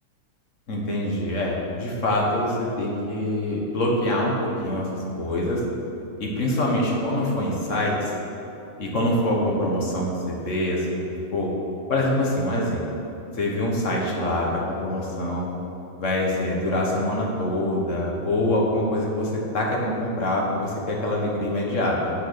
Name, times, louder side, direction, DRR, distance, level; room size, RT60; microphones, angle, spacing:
voice 1, 0.7-4.9 5.2-5.6 6.2-8.1 8.8-11.0 11.3-11.5 11.9-12.8 13.4-15.5 15.9-22.1, left 1 dB, 60° left, -2 dB, 1.6 m, -25 dB
8.1 x 6.5 x 6.5 m, 2.9 s
omnidirectional pair, 1.5 m